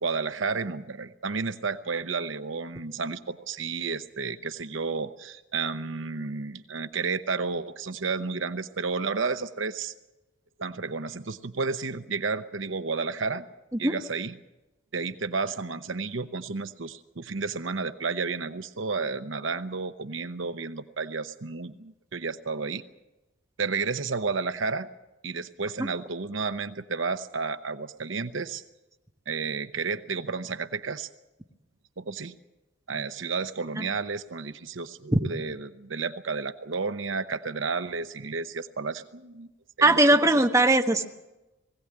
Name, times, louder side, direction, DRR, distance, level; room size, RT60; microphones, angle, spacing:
voice 1, 0.0-9.9 10.6-13.5 13.8-14.4 14.9-22.8 23.6-24.9 25.2-28.6 29.3-31.1 32.0-32.3 32.9-39.5 39.8-40.2, right 4 dB, 70° right, 10 dB, 0.9 m, -31 dB
voice 2, 39.8-41.1, right 2 dB, 15° right, 3 dB, 1.2 m, -19 dB
21.0 x 16.5 x 8.7 m, 1.0 s
head